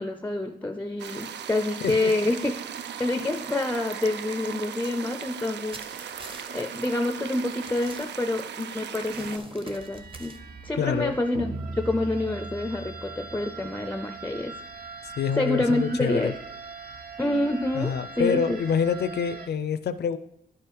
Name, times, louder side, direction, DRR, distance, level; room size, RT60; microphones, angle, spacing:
voice 1, 0.0-2.5 3.0-6.2 6.5-10.4 10.6-11.5 11.8-14.6 15.4-16.3 17.2-18.6, left 2 dB, 10° left, 7 dB, 0.4 m, -27 dB
sound 1, 1.0-9.4, right 8 dB, 75° right, 0.5 m, -38 dB
sound 2, 5.7-6.6 7.1-7.2 7.5-8.6 9.0-10.4, right 2 dB, 30° right, 0.9 m, -45 dB
sound 3, 9.7-19.5, right 3 dB, 60° right, 0.9 m, -40 dB
voice 2, 10.8-11.2 15.2-16.3 17.7-20.2, left 7 dB, 65° left, 12 dB, 0.5 m, -26 dB
11.0 x 4.9 x 4.6 m, 0.76 s
wide cardioid pair, 110°, 18 cm